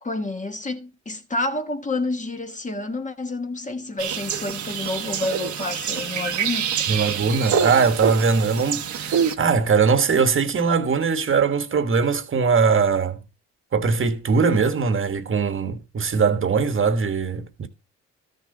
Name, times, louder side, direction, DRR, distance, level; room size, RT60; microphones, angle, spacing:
voice 1, 0.0-6.7, left 2 dB, 25° left, 1.3 m, -29 dB
sound 1, 4.0-9.3, right 8 dB, 75° right, 1.3 m, -26 dB
voice 2, 6.9-13.2 13.7-17.7, right 5 dB, 45° right, 1.4 m, -21 dB
13.0 x 6.6 x 3.9 m
cardioid pair, 90°, 30 cm